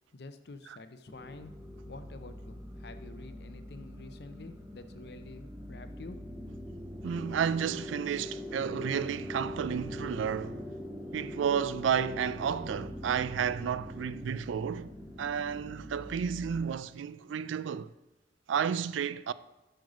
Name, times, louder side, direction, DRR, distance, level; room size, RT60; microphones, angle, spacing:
voice 1, 0.1-6.2, left 3 dB, 60° left, 0.6 m, -48 dB
sound 1, 1.1-16.7, left 1 dB, 15° right, 0.8 m, -43 dB
voice 2, 7.0-10.7 11.1-14.9 15.2-17.9 18.5-19.3, right 7 dB, 85° right, 0.3 m, -32 dB
7.9 x 6.5 x 4.9 m
head